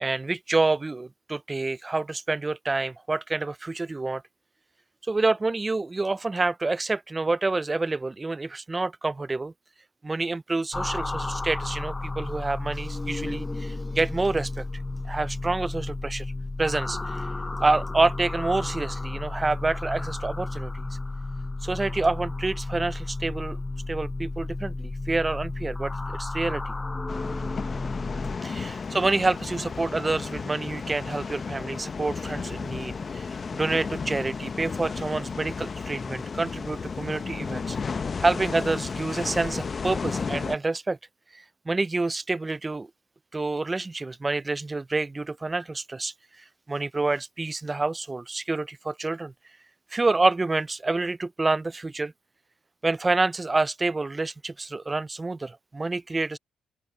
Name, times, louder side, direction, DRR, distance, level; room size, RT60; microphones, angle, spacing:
voice 1, 0.0-4.2 5.0-9.5 10.0-14.6 15.1-16.3 16.6-17.3 17.6-20.9 21.6-23.6 23.9-26.7 28.4-37.8 38.2-41.0 41.3-42.9 43.3-49.3 49.9-52.1 52.8-56.4, right 3 dB, 20° right, 0.5 m, -28 dB
sound 1, 10.7-28.4, left 2 dB, 20° left, 4.8 m, -32 dB
sound 2, 27.1-40.6, left 5 dB, 40° left, 0.8 m, -33 dB
open air
cardioid pair, 90°, 0 cm